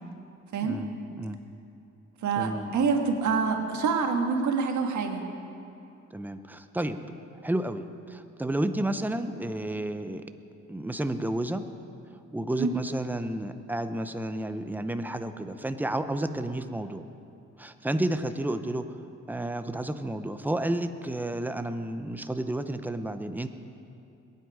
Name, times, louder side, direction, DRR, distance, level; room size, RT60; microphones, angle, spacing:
voice 1, 0.6-0.9 1.2-1.4 2.4-2.7 6.1-7.0 7.4-10.2 10.7-11.6 12.3-17.0 17.6-18.8 19.3-23.5, right 1 dB, 5° right, 9 dB, 0.8 m, -31 dB
voice 2, 2.2-5.2 12.6-12.7, right 5 dB, 70° right, 3 dB, 1.7 m, -26 dB
22.0 x 9.4 x 4.9 m, 2.7 s
cardioid pair, 90°, 30 cm